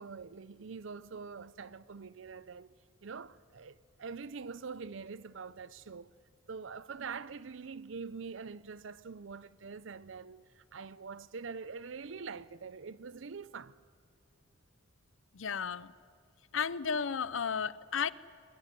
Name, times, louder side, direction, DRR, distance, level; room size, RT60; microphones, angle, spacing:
voice 1, 0.0-2.7 3.0-6.1 6.5-13.8, right 5 dB, 70° right, 0.6 m, -44 dB
voice 2, 15.3-15.9 16.5-18.1, left 6 dB, 75° left, 0.7 m, -33 dB
22.0 x 21.5 x 9.9 m
head